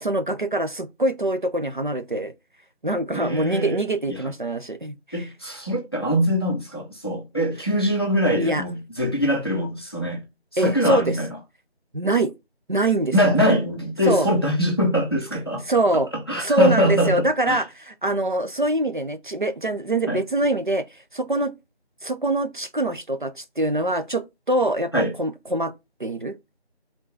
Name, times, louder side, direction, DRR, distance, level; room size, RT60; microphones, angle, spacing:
voice 1, 0.0-2.3 2.8-5.3 8.4-8.6 10.6-11.1 11.9-12.3 12.7-13.1 14.1-14.3 15.7-16.1 16.4-20.8 21.1-21.5 22.0-25.7 26.0-26.3, right 1 dB, 50° right, 0.7 m, -24 dB
voice 2, 3.1-3.8 4.1-4.2 5.1-10.2 10.5-11.3 13.1-15.6 16.3-17.6 20.1-20.2 24.9-25.1, equal, 25° left, 0.9 m, -23 dB
4.8 x 3.8 x 5.4 m
figure-of-eight pair, 175°, 32 cm